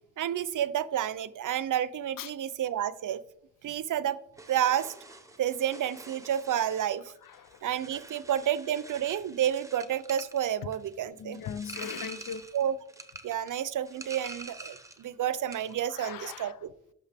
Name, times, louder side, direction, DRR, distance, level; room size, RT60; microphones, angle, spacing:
voice 1, 0.2-3.2 3.6-4.2 4.5-4.9 5.4-7.1 7.6-11.4 12.5-12.8 13.2-16.7, right 10 dB, 70° right, 0.5 m, -30 dB
sound 1, 4.4-15.1 15.3-15.8, right 2 dB, 10° right, 0.7 m, -46 dB
voice 2, 7.3-7.6 11.2-12.5 15.9-16.6, left 7 dB, 80° left, 0.5 m, -39 dB
11.5 x 6.1 x 3.4 m
wide cardioid pair, 140°, 33 cm